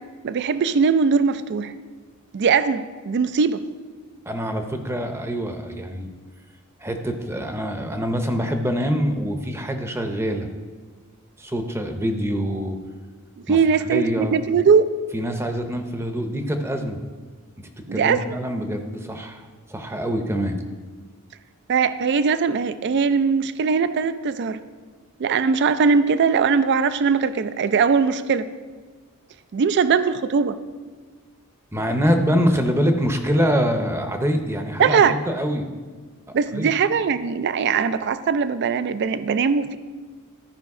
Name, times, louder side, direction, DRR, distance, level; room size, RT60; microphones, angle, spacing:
voice 1, 0.2-1.7 2.3-3.6 13.5-14.9 17.9-18.3 21.7-24.6 25.2-28.5 29.5-30.6 34.8-35.2 36.3-39.8, right 5 dB, 50° right, 12 dB, 0.4 m, -20 dB
voice 2, 4.3-6.1 6.8-10.5 11.4-12.8 13.5-13.6 13.9-14.4 15.1-17.0 17.6-20.6 31.7-35.7 36.5-36.7, equal, 10° right, 6 dB, 0.7 m, -25 dB
13.5 x 5.0 x 4.8 m, 1.4 s
head